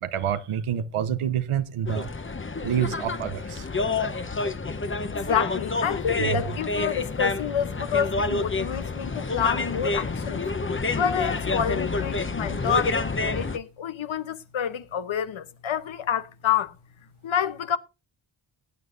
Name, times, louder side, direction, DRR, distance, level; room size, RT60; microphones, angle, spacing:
voice 1, 0.0-2.1 2.6-3.7 6.2-6.4, right 9 dB, 90° right, 0.9 m, -27 dB
sound 1, 1.9-13.6, left 3 dB, 25° left, 0.9 m, -28 dB
voice 2, 5.3-10.4 10.9-16.7 17.2-17.8, left 8 dB, 70° left, 1.0 m, -28 dB
19.0 x 9.2 x 2.6 m
cardioid pair, 45°, 49 cm